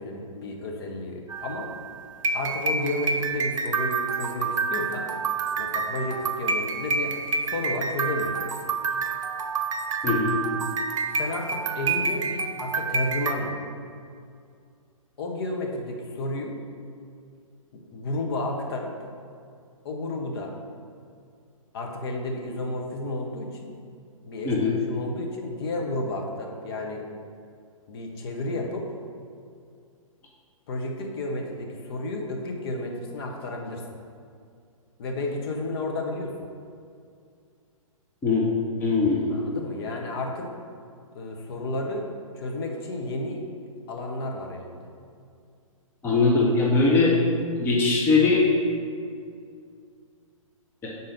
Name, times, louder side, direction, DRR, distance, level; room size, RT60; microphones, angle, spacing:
voice 1, 0.0-1.7 2.3-5.1 5.6-8.4 11.2-13.6 15.2-16.6 17.7-18.9 19.8-20.5 21.7-23.7 24.2-27.1 27.9-28.9 30.7-33.8 35.0-36.3 39.3-40.5 41.1-42.1 42.4-43.4 43.9-44.9, left 2 dB, 45° left, 1 dB, 0.9 m, -32 dB
sound 1, 1.3-13.3, right 4 dB, 65° right, 0.6 m, -28 dB
voice 2, 10.0-10.3 24.4-24.7 38.2-38.4 38.8-39.4 46.0-47.2 47.6-48.5 50.8-50.9, left 3 dB, 10° left, -3 dB, 0.7 m, -21 dB
5.4 x 4.0 x 5.1 m, 2.3 s
figure-of-eight pair, 125°, 18 cm